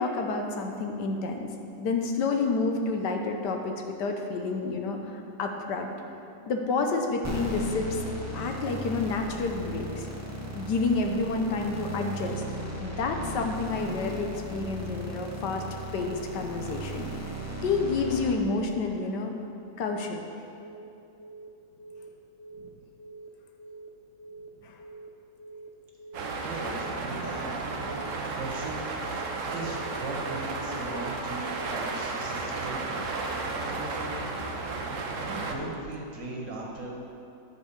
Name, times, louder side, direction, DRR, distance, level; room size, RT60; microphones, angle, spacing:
voice 1, 0.0-1.5 1.8-5.9 6.5-8.0 8.3-10.1 10.5-12.4 12.8-15.7 15.9-17.1 17.6-19.3 19.8-20.2 24.6-24.7, left 3 dB, 70° left, 3 dB, 1.4 m, -29 dB
sound 1, 7.2-18.3, right 1 dB, 15° right, 0.6 m, -36 dB
Telephone, 20.6-20.9 21.2-21.5 21.8-22.1 22.4-22.7 23.0-23.3 23.6-23.9 24.2-24.5 24.8-25.1 25.4-25.7 26.0-26.3 26.6-26.9 27.2-27.5 27.8-28.1 28.4-28.7 29.0-29.3 29.6-29.9 30.2-30.5 30.8-31.1 31.4-31.7, right 3 dB, 45° left, 1.2 m, -45 dB
sound 2, 26.1-35.5, right 3 dB, 55° right, 1.0 m, -33 dB
voice 2, 26.4-27.8 28.3-33.0 33.3-34.3 35.2-36.9, right 2 dB, 75° right, -3 dB, 2.3 m, -39 dB
10.5 x 4.7 x 7.0 m, 2.7 s
omnidirectional pair, 2.0 m